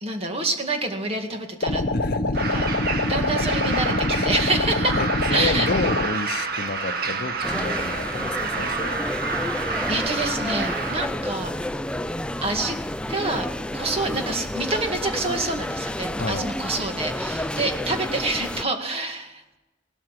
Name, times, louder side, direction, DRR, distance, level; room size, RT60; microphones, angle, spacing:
voice 1, 0.0-1.8 2.5-2.7 3.0-5.0 5.3-5.7 9.9-11.7 12.4-12.8 13.1-13.5 13.7-19.6, right 2 dB, 35° right, 4 dB, 2.0 m, -27 dB
sound 1, 1.6-6.1, left 2 dB, 75° left, 1.1 m, -24 dB
voice 2, 1.9-2.4 4.1-4.3 4.9-9.0 16.2-16.5, left 3 dB, 55° left, 9 dB, 0.8 m, -30 dB
sound 2, 2.3-11.1, right 4 dB, 55° right, 1.7 m, -29 dB
sound 3, 7.4-18.6, left 1 dB, 5° left, 0.4 m, -30 dB
18.0 x 13.0 x 5.9 m, 1.1 s
head